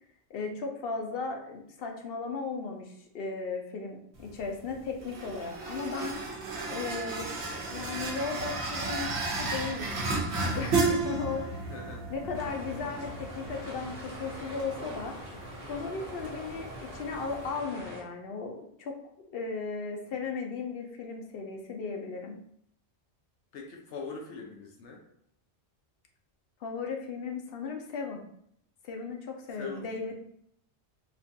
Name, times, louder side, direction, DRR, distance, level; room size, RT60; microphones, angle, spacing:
voice 1, 0.3-6.2 6.7-7.3 7.7-10.2 10.6-11.7 12.1-15.2 15.7-19.0 19.3-22.4 26.6-28.2 28.8-30.2, left 4 dB, 65° left, 2 dB, 0.7 m, -36 dB
sound 1, 4.1-17.5, right 3 dB, 75° right, 1.0 m, -34 dB
voice 2, 11.6-12.0 23.5-25.0 29.6-30.0, left 4 dB, 85° left, 1 dB, 1.0 m, -42 dB
sound 2, 12.3-18.0, equal, 35° right, 1.2 m, -44 dB
4.2 x 2.3 x 2.7 m, 0.72 s
omnidirectional pair, 1.1 m